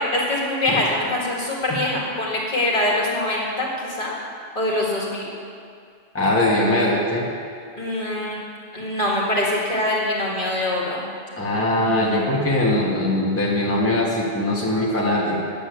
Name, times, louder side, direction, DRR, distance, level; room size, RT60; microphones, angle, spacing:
voice 1, 0.0-3.7 4.0-4.1 4.6-5.3 7.8-8.4 8.7-11.1, left 1 dB, 45° left, -4 dB, 2.1 m, -23 dB
voice 2, 6.1-7.2 11.4-15.4, left 1 dB, 10° left, -5 dB, 1.5 m, -21 dB
9.7 x 6.9 x 8.2 m, 2.3 s
omnidirectional pair, 1.2 m